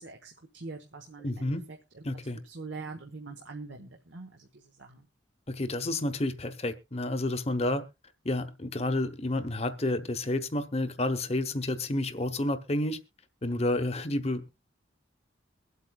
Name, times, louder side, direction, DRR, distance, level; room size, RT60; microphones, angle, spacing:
voice 1, 0.0-2.0 2.4-5.1, right 3 dB, 70° right, 1.2 m, -44 dB
voice 2, 1.2-1.7 2.0-2.4 5.5-7.9 8.2-13.0 13.4-14.5, left 1 dB, 30° left, 0.9 m, -30 dB
23.0 x 8.1 x 2.3 m
head